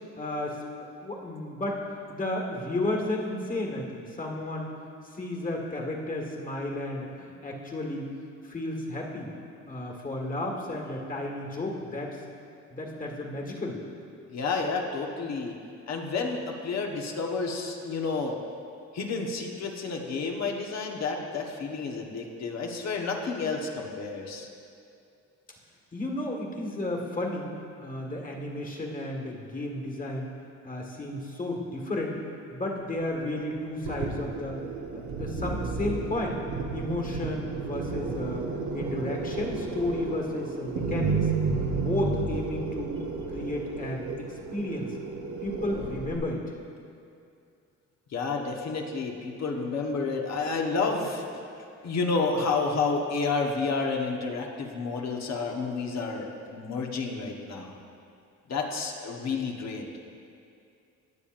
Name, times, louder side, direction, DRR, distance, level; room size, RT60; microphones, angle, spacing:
voice 1, 0.2-0.6 1.0-4.7 5.0-8.1 8.4-9.3 9.7-12.2 12.7-13.8 25.9-27.5 27.8-30.3 30.6-32.2 32.5-34.6 34.9-36.4 36.7-41.3 41.7-42.9 43.3-44.9 45.4-46.4, left 1 dB, 25° left, 0 dB, 1.8 m, -33 dB
voice 2, 14.3-15.6 15.9-18.4 18.9-24.5 48.1-51.2 51.8-57.7 58.5-59.8, left 4 dB, 60° left, 1 dB, 1.3 m, -30 dB
sound 1, 33.8-46.2, right 4 dB, 80° right, 1.3 m, -32 dB
19.5 x 7.1 x 2.6 m, 2.5 s
cardioid pair, 90°, 30 cm